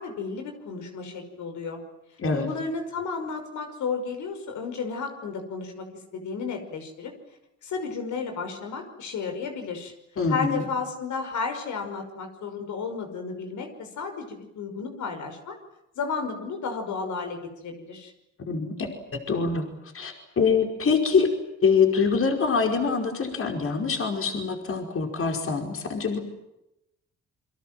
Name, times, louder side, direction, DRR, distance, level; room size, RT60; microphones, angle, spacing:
voice 1, 0.0-1.8 2.3-5.9 6.1-7.1 7.6-9.9 10.3-15.6 16.0-18.1, left 5 dB, 75° left, 6 dB, 5.7 m, -33 dB
voice 2, 10.2-10.6 18.4-19.7 19.9-21.3 21.6-26.2, left 5 dB, 45° left, 4 dB, 5.1 m, -24 dB
28.5 x 24.0 x 7.8 m, 0.88 s
cardioid pair, 90°, 30 cm